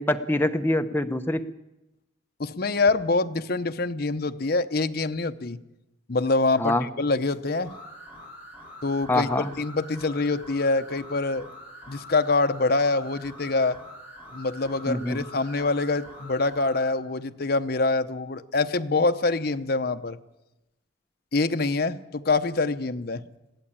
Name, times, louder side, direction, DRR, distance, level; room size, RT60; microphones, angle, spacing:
voice 1, 0.0-1.4 6.6-6.9 9.1-9.5 14.9-15.2, left 1 dB, 10° left, 7 dB, 0.8 m, -24 dB
voice 2, 2.4-5.6 6.1-7.7 8.8-11.5 11.9-13.8 14.3-20.2 21.3-23.2, left 3 dB, 50° left, 9 dB, 0.8 m, -25 dB
sound 1, 7.6-16.9, equal, 10° right, 5.6 m, -45 dB
21.0 x 15.5 x 8.6 m, 0.96 s
head